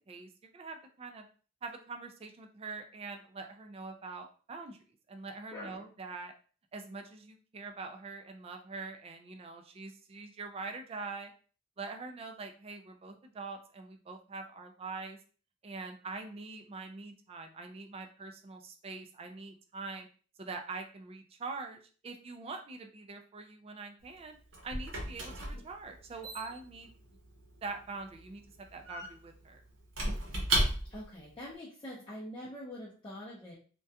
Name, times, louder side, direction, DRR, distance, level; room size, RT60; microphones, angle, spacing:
voice 1, 0.1-1.3 1.6-4.8 5.1-6.3 6.7-11.3 11.8-15.2 15.6-20.1 20.4-24.4 24.6-26.9 27.6-29.6, right 3 dB, 30° right, 5 dB, 0.3 m, -44 dB
voice 2, 5.5-5.8 25.5-25.6 30.9-33.6, left 1 dB, 25° left, -7 dB, 0.5 m, -44 dB
Squeak / Wood, 24.0-31.2, right 1 dB, 70° right, 0.7 m, -36 dB
2.3 x 2.2 x 2.7 m, 0.40 s
head